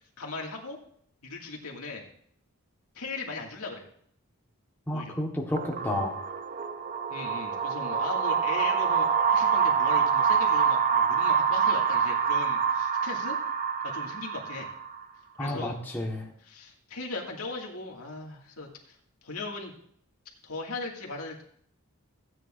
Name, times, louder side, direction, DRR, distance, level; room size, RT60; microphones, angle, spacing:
voice 1, 0.2-0.8 1.2-2.1 2.9-3.9 4.9-5.2 7.1-13.4 13.8-14.7 15.4-15.8 16.4-19.0 19.2-19.7 20.4-21.4, left 3 dB, 80° left, -1 dB, 2.1 m, -38 dB
voice 2, 4.9-6.2 15.4-16.3, left 1 dB, 10° left, -2 dB, 1.2 m, -31 dB
sound 1, 5.6-15.0, right 6 dB, 35° right, 0.6 m, -26 dB
15.5 x 9.3 x 2.5 m, 0.64 s
head